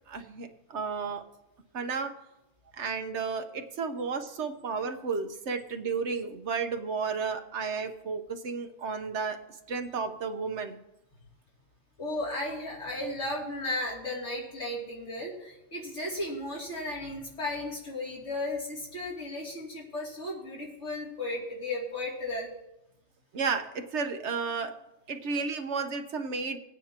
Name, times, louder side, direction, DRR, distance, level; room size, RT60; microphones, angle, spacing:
voice 1, 0.1-1.2 1.7-2.1 2.7-9.4 9.7-10.8 23.3-24.7 25.1-26.6, right 5 dB, 70° right, 6 dB, 1.3 m, -32 dB
voice 2, 12.0-22.5, left 1 dB, 80° left, -4 dB, 3.2 m, -35 dB
20.0 x 9.0 x 2.9 m, 0.87 s
omnidirectional pair, 1.2 m